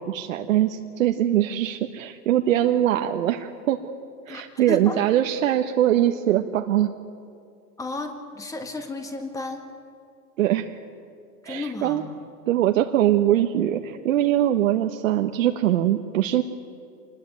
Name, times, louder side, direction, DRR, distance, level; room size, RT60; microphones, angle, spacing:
voice 1, 0.0-3.8 4.3-6.9 10.4-10.8 11.4-12.0 12.5-16.4, right 12 dB, 55° right, 4 dB, 1.4 m, -22 dB
voice 2, 4.7-5.0 7.8-9.6 11.4-12.1, left 3 dB, 5° left, 6 dB, 1.8 m, -33 dB
27.0 x 20.5 x 9.1 m, 2.4 s
hypercardioid pair, 150°, 48 cm